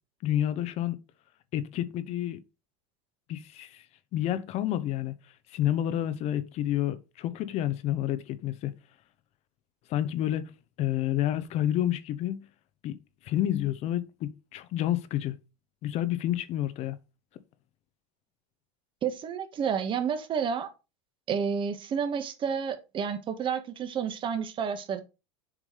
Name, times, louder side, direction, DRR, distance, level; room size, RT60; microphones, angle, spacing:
voice 1, 0.2-1.0 1.5-2.4 3.3-3.8 4.1-5.2 5.5-8.7 9.9-10.5 10.8-12.5 12.8-13.0 13.2-15.4 15.8-17.0, left 12 dB, 50° left, 0.9 m, -29 dB
voice 2, 19.0-20.7 21.3-25.0, right 7 dB, 35° right, 1.5 m, -30 dB
7.5 x 4.9 x 5.1 m
supercardioid pair, 110°, 15 cm